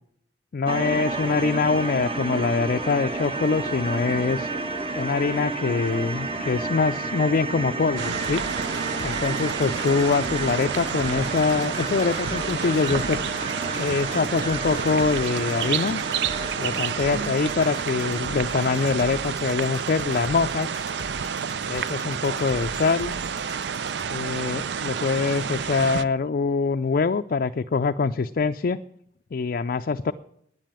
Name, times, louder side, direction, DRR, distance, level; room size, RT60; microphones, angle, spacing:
voice 1, 0.5-4.5 4.9-8.4 9.0-13.2 13.8-16.0 16.6-20.8 21.7-23.2 24.1-28.8 29.3-30.1, left 4 dB, 55° left, 7 dB, 0.4 m, -24 dB
sound 1, 0.7-18.9, right 3 dB, 30° right, 1.1 m, -32 dB
sound 2, 8.0-26.0, right 7 dB, 75° right, 0.5 m, -29 dB
sound 3, 8.2-24.2, left 2 dB, 20° left, 0.8 m, -43 dB
9.8 x 9.2 x 8.8 m, 0.69 s
head